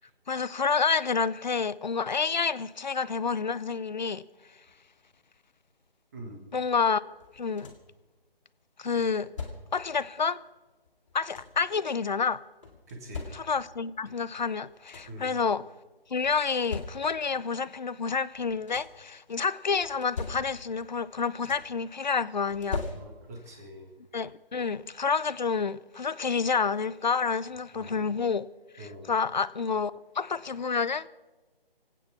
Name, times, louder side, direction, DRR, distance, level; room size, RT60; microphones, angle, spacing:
voice 1, 0.3-4.2 6.5-7.0 7.3-7.7 8.8-9.3 9.7-10.4 11.1-12.4 13.3-15.6 16.1-22.8 24.1-28.5 28.7-31.1, left 5 dB, 50° left, 0.5 m, -29 dB
voice 2, 6.1-6.5 12.9-13.3 15.1-15.4 23.0-23.9 27.7-28.0 28.8-29.1, right 1 dB, 15° right, 1.7 m, -44 dB
sound 1, 7.2-8.0 9.0-9.9 10.9-11.7 12.6-13.8 14.4-14.5 14.7-15.3 16.2-17.4 18.3-19.1 19.8-20.9 21.1-21.9 22.5-23.5 24.8-24.9 25.4-25.6, left 4 dB, 30° left, 2.4 m, -41 dB
22.0 x 9.1 x 7.0 m
figure-of-eight pair, 165°, 30 cm